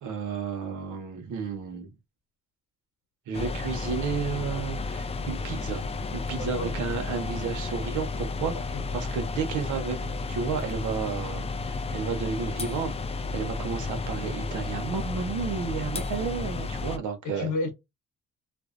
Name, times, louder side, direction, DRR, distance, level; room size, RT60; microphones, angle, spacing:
voice 1, 0.0-1.9 3.3-5.9 6.1-8.5 8.9-17.5, right 6 dB, 75° right, 0.8 m, -32 dB
sound 1, 3.3-17.0, left 3 dB, 20° left, 0.3 m, -32 dB
voice 2, 6.4-6.7 8.5-8.8 17.2-17.7, left 3 dB, 80° left, 0.9 m, -32 dB
2.5 x 2.0 x 2.4 m
cardioid pair, 90°, 30 cm